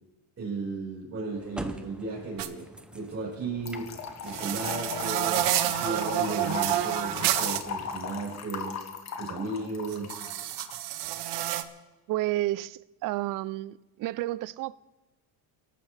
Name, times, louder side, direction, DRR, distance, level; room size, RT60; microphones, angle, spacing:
voice 1, 0.4-3.9 4.2-8.8 9.2-10.1, right 3 dB, 30° right, 5.0 m, -35 dB
sound 1, 1.3-8.5, right 1 dB, ahead, 0.7 m, -47 dB
sound 2, 2.4-2.5 4.3-7.6 9.9-11.6, right 13 dB, 65° right, 1.0 m, -29 dB
Trickle dribble / Fill (with liquid), 3.7-10.7, left 6 dB, 40° left, 1.6 m, -37 dB
voice 2, 12.1-13.7 14.0-14.8, right 16 dB, 50° right, 0.4 m, -30 dB
23.5 x 12.5 x 3.3 m
cardioid pair, 145°, 43 cm